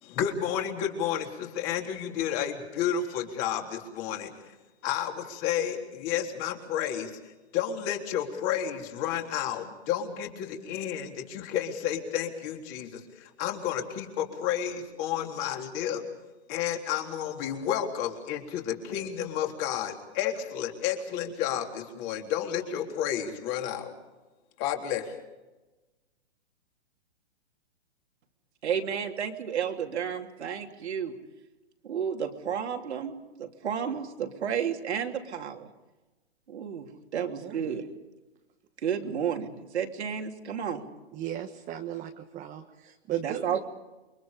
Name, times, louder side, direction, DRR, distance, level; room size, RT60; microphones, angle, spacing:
voice 1, 0.0-4.3 4.8-7.1 7.5-16.0 16.5-23.9 24.6-25.2, left 9 dB, 35° left, 2 dB, 3.8 m, -31 dB
voice 2, 28.6-31.1 31.8-33.1 33.4-35.7 36.5-37.9 38.8-40.8 43.2-43.6, right 8 dB, 70° right, 4 dB, 3.3 m, -32 dB
voice 3, 37.2-37.7 41.1-43.6, right 11 dB, 20° right, 3 dB, 1.4 m, -36 dB
29.0 x 24.0 x 5.3 m, 1.1 s
hypercardioid pair, 140°, 34 cm